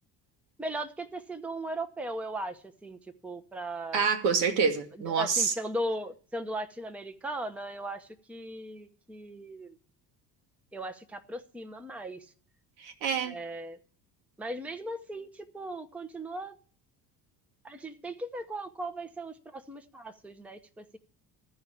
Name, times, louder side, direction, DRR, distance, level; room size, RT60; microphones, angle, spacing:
voice 1, 0.6-4.1 5.0-9.8 10.7-12.3 13.2-13.8 14.4-16.6 17.6-21.0, right 1 dB, 5° right, 9 dB, 0.7 m, -38 dB
voice 2, 3.9-5.5 12.8-13.3, right 5 dB, 75° right, 5 dB, 1.5 m, -27 dB
13.0 x 4.8 x 8.4 m, 0.44 s
hypercardioid pair, 60°, 50 cm